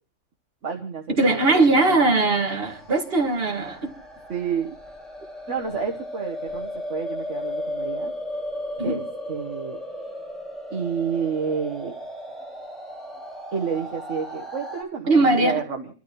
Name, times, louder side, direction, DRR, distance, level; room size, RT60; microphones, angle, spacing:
voice 1, 0.6-2.2 4.3-4.8 5.5-8.1 8.8-9.0 9.3-9.8 10.7-11.9 13.5-15.9, right 6 dB, 65° right, 1.5 m, -30 dB
voice 2, 1.2-3.9 8.8-9.0 15.1-15.6, right 2 dB, 45° right, 2.0 m, -20 dB
sound 1, 2.6-14.8, left 1 dB, ahead, 5.0 m, -35 dB
30.0 x 12.5 x 3.1 m
omnidirectional pair, 1.4 m